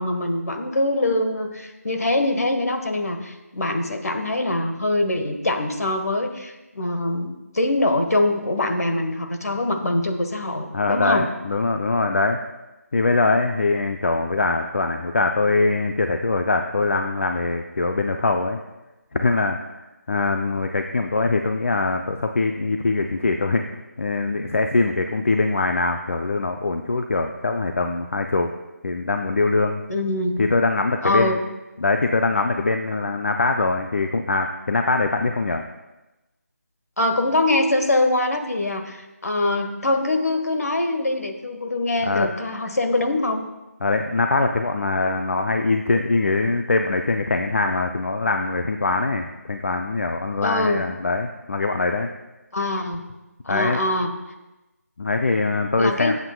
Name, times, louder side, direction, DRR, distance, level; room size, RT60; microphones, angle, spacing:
voice 1, 0.0-11.3 29.9-30.3 31.0-31.4 37.0-43.5 50.4-50.8 52.5-53.0 53.4-54.1 55.8-56.1, left 2 dB, 65° left, 5 dB, 1.4 m, -23 dB
voice 2, 10.7-12.4 12.9-18.6 19.1-19.6 20.1-23.6 24.0-28.5 28.8-29.8 30.4-31.4 31.8-35.6 42.0-42.3 43.8-52.1 53.5-53.8 55.0-56.2, left 3 dB, 50° left, 5 dB, 0.6 m, -22 dB
18.5 x 8.1 x 2.3 m, 1.0 s
figure-of-eight pair, 160°, 9 cm